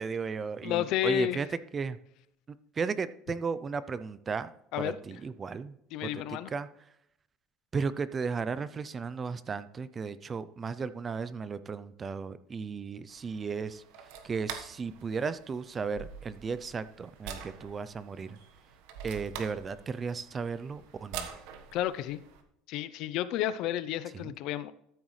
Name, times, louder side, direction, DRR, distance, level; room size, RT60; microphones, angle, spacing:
voice 1, 0.0-1.5 1.7-2.0 2.8-4.5 4.8-5.7 6.0-6.7 7.7-13.8 14.2-18.4 19.0-21.3 24.1-24.3, right 5 dB, 20° right, 15 dB, 0.4 m, -35 dB
voice 2, 0.6-1.4 4.7-5.0 5.9-6.5 21.7-22.2 22.7-24.7, left 12 dB, 55° left, 15 dB, 0.5 m, -31 dB
sound 1, 13.1-22.4, right 7 dB, 70° right, 1.2 m, -46 dB
sound 2, 14.8-14.9 15.9-17.5 18.4-18.7 18.9-21.1, right 6 dB, 90° right, 4.2 m, -50 dB
13.5 x 8.0 x 3.2 m, 0.76 s
cardioid pair, 150°, 0 cm